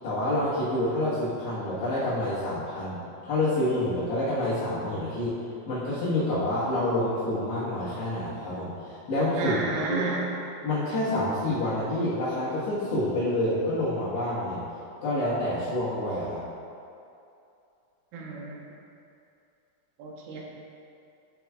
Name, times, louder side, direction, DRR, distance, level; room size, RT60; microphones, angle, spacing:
voice 1, 0.0-3.0 3.2-5.3 5.7-9.6 9.9-10.0 10.6-14.6 15.0-16.4, left 1 dB, 75° left, -14 dB, 3.6 m, -28 dB
voice 2, 9.4-10.3 18.1-18.7 20.0-20.4, right 4 dB, 85° right, -2 dB, 3.2 m, -31 dB
11.0 x 6.1 x 2.3 m, 2.6 s
omnidirectional pair, 4.9 m